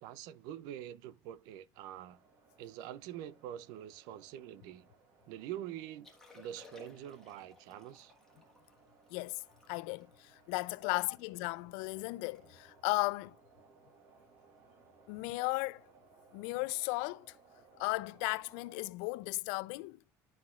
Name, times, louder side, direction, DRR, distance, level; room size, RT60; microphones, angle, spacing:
voice 1, 0.0-2.2 2.6-4.9 5.3-8.1, right 11 dB, 60° right, 0.4 m, -45 dB
sound 1, 1.9-18.9, right 4 dB, 35° right, 1.2 m, -64 dB
Liquid, 5.9-11.3 11.8-11.9 12.1-12.4 12.7-12.9 13.5-13.8 15.2-15.3, left 4 dB, 5° left, 1.4 m, -60 dB
voice 2, 9.1-13.4 15.1-15.8 16.3-17.4 17.8-20.1, left 24 dB, 75° left, 0.4 m, -36 dB
11.5 x 5.8 x 2.4 m
cardioid pair, 175°, 7 cm